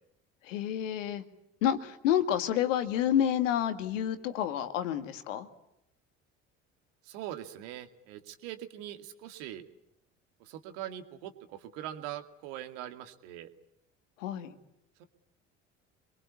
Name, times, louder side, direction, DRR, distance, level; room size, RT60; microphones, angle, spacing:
voice 1, 0.4-1.2 1.6-5.5 14.2-14.5, left 10 dB, 70° left, 9 dB, 2.1 m, -29 dB
voice 2, 7.0-9.6 10.4-13.5 15.0-15.1, right 12 dB, 65° right, 9 dB, 2.3 m, -42 dB
28.0 x 22.5 x 8.4 m, 0.81 s
figure-of-eight pair, 60°, 39 cm